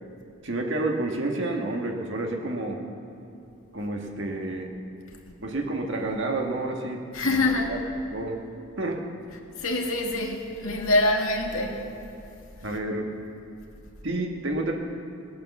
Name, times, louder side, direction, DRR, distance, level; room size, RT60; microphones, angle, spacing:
voice 1, 0.4-2.8 3.7-4.7 5.4-7.0 7.3-7.4 7.7-7.8 8.1-8.4 8.8-9.0 12.6-13.1 14.0-14.7, right 2 dB, 55° right, 1 dB, 1.6 m, -29 dB
voice 2, 7.1-7.7 9.6-11.8, left 2 dB, 75° left, 0 dB, 1.9 m, -25 dB
19.5 x 8.6 x 7.1 m, 2.8 s
head